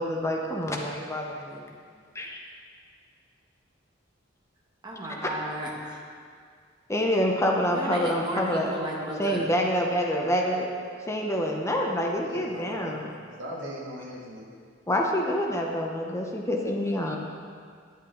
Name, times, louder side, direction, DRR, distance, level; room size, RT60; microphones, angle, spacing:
voice 1, 0.0-1.7 2.1-2.4 5.2-5.3 6.9-8.7 9.2-10.7 11.1-13.1 14.9-17.2, equal, 15° left, 0 dB, 0.7 m, -27 dB
voice 2, 4.8-6.0 7.6-9.5, right 1 dB, 25° right, -3 dB, 1.2 m, -34 dB
voice 3, 12.2-12.9 13.4-14.5, equal, 75° right, -4 dB, 1.9 m, -39 dB
10.0 x 8.2 x 3.8 m, 2.1 s
head